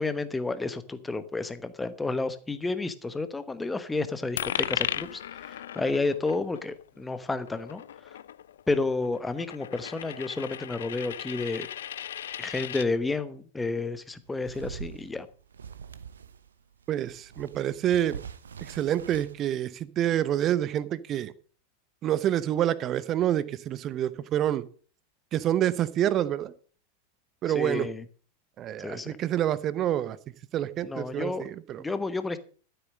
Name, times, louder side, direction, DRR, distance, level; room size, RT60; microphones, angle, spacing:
voice 1, 0.0-5.2 5.5-7.8 8.7-11.7 12.4-15.3 27.5-28.0 28.8-29.2 30.8-31.4 31.8-32.4, left 3 dB, 10° left, 12 dB, 1.1 m, -31 dB
Coin (dropping), 4.4-12.9, left 10 dB, 60° left, 0.5 m, -36 dB
sound 1, 14.1-16.5 16.8-19.3, right 7 dB, 70° right, 0.9 m, -43 dB
voice 2, 16.9-18.2 18.6-21.3 22.0-24.6 25.3-26.5 27.4-27.9 28.6-30.2 30.5-31.8, right 11 dB, 30° right, 17 dB, 0.8 m, -27 dB
13.0 x 8.0 x 6.3 m, 0.42 s
figure-of-eight pair, 90°, 0 cm